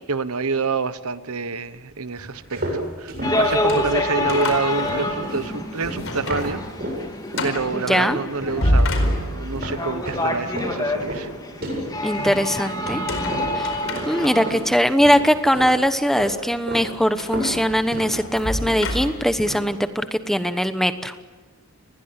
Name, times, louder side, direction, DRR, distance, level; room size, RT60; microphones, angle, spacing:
voice 1, 0.1-6.6 7.4-8.9 9.2-11.3, right 4 dB, 85° right, 13 dB, 1.2 m, -27 dB
sound 1, 2.2-7.0 7.3-8.1 8.4-14.7 15.0-15.8 16.1-16.9 17.2-19.0 19.4-19.7, right 1 dB, 45° right, 7.8 m, -32 dB
sound 2, 3.2-14.5, left 1 dB, 20° left, 3.1 m, -27 dB
sound 3, 3.4-5.5 5.9-6.5 6.8-6.9 7.3-7.7 8.4-9.7 12.9-14.6 15.3-15.4 17.2-19.4, left 1 dB, 65° left, 4.6 m, -27 dB
voice 2, 7.7-8.2 12.0-13.0 13.5-13.7 14.1-21.1, equal, ahead, 10 dB, 1.0 m, -21 dB
29.0 x 20.5 x 8.2 m, 1.3 s
head